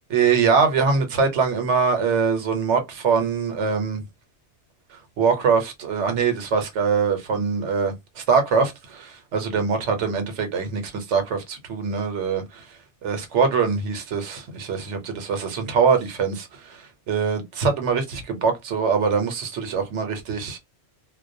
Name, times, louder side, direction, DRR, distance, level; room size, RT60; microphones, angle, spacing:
voice 1, 0.1-4.0 5.2-12.6 13.0-20.6, right 5 dB, 90° right, 1.0 m, -23 dB
2.2 x 2.1 x 2.5 m
omnidirectional pair, 1.2 m